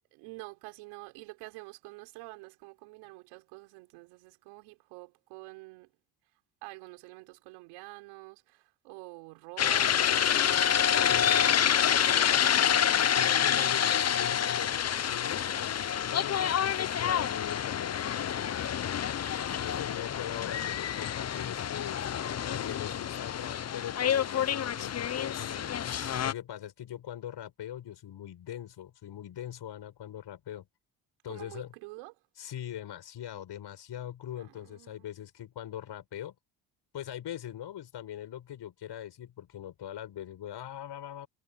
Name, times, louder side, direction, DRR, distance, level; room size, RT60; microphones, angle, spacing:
voice 1, 0.1-5.9 6.6-10.2 10.9-12.9 31.3-32.2 34.4-35.1, right 24 dB, 85° right, 4.2 m, -48 dB
sound 1, 9.6-26.3, left 9 dB, 35° left, 0.8 m, -28 dB
voice 2, 11.0-11.7 13.2-19.0 19.6-22.0 22.4-25.7 26.2-30.7 31.2-31.7 32.4-36.3 36.9-41.3, left 11 dB, 60° left, 6.4 m, -41 dB
supercardioid pair, 60°, 47 cm